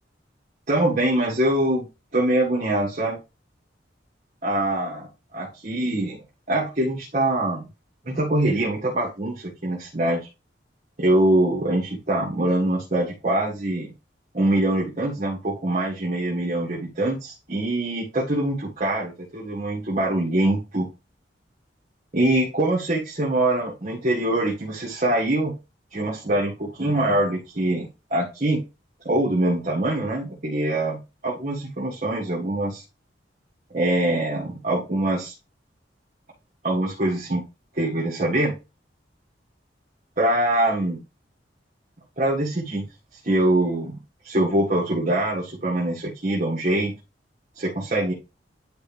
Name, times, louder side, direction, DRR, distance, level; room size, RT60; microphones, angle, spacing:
voice 1, 0.7-1.9 2.1-3.2 4.4-6.1 6.5-7.7 8.0-10.2 11.0-13.9 14.3-20.9 22.1-25.5 25.9-28.6 29.0-32.8 33.7-35.3 36.6-37.4 37.8-38.6 40.2-41.0 42.2-42.9 43.1-44.0 44.2-46.9 47.6-48.1, right 1 dB, 40° right, -4 dB, 1.9 m, -24 dB
10.5 x 4.2 x 3.4 m, 0.27 s
head